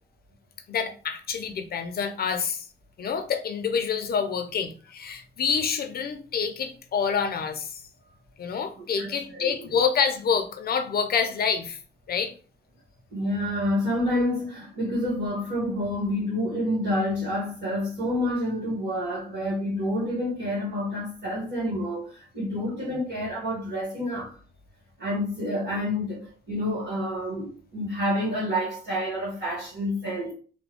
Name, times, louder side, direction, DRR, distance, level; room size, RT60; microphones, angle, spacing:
voice 1, 0.7-2.7 3.0-7.8 8.4-11.8 12.1-12.3, left 6 dB, 50° left, 0.7 m, -27 dB
voice 2, 8.8-9.7 13.1-24.4 25.0-30.3, left 1 dB, 65° right, 1.7 m, -28 dB
3.4 x 2.3 x 3.5 m
cardioid pair, 90°, 20 cm